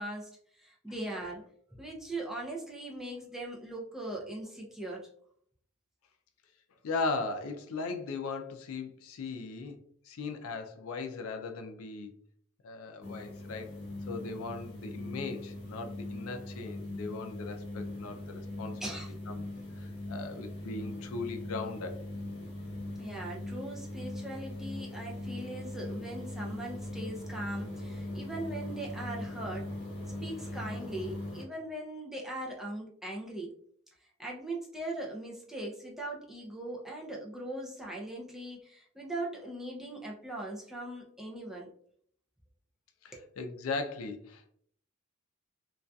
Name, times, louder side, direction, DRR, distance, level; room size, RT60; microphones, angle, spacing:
voice 1, 0.0-1.4 1.7-5.1 18.8-19.1 23.0-29.7 30.2-33.5 34.0-41.7 43.1-43.3, right 1 dB, ahead, -3 dB, 0.4 m, -40 dB
voice 2, 6.8-9.8 10.0-12.1 12.6-13.7 14.1-18.9 19.8-22.0 43.0-44.5, left 3 dB, 80° left, 6 dB, 0.4 m, -38 dB
sound 1, 13.0-31.4, left 1 dB, 60° left, 1.1 m, -40 dB
2.6 x 2.3 x 2.2 m, 0.63 s
head